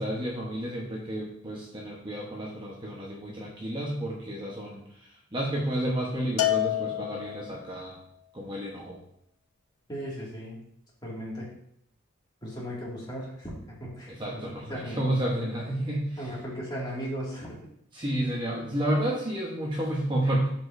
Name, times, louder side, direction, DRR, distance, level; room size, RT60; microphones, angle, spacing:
voice 1, 0.0-8.0 8.3-9.0 14.1-16.2 17.9-20.5, right 1 dB, 20° right, -3 dB, 1.0 m, -31 dB
Bell, 6.4-7.7, left 14 dB, 85° left, 0.7 m, -28 dB
voice 2, 9.9-10.6 11.0-11.5 12.4-15.0 16.2-17.6, equal, 20° left, -5 dB, 2.2 m, -37 dB
12.0 x 5.2 x 2.6 m, 0.70 s
head